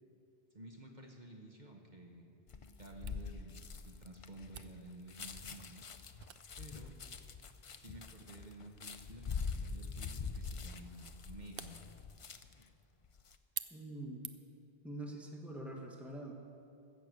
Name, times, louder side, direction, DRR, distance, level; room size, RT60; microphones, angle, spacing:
voice 1, 0.5-2.4 2.8-5.9 6.6-6.9 7.7-11.8, right 2 dB, 45° right, 1 dB, 1.2 m, -52 dB
sound 1, 2.5-12.7 13.0-13.4, left 5 dB, 45° left, 0.5 m, -44 dB
Camera, 3.1-14.7, right 9 dB, 65° right, 0.8 m, -53 dB
voice 2, 13.7-14.3 14.8-16.3, right 1 dB, ahead, 0 dB, 1.3 m, -45 dB
15.0 x 6.7 x 8.0 m, 2.5 s
omnidirectional pair, 1.1 m